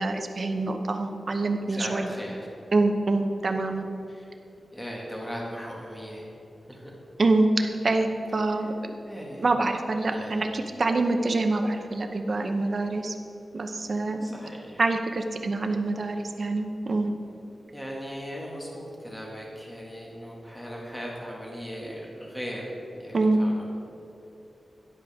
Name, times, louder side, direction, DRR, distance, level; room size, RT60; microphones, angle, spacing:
voice 1, 0.0-2.1 2.7-3.9 7.2-8.7 9.4-13.2 13.5-14.3 14.8-17.1 23.1-23.4, right 2 dB, 50° right, 5 dB, 0.9 m, -25 dB
voice 2, 1.7-2.4 4.1-4.3 4.7-6.3 6.7-6.9 9.0-9.4 10.1-10.6 14.2-14.8 17.7-23.8, equal, 10° left, -3 dB, 2.1 m, -38 dB
12.5 x 10.5 x 3.7 m, 2.8 s
wide cardioid pair, 130°, 0 cm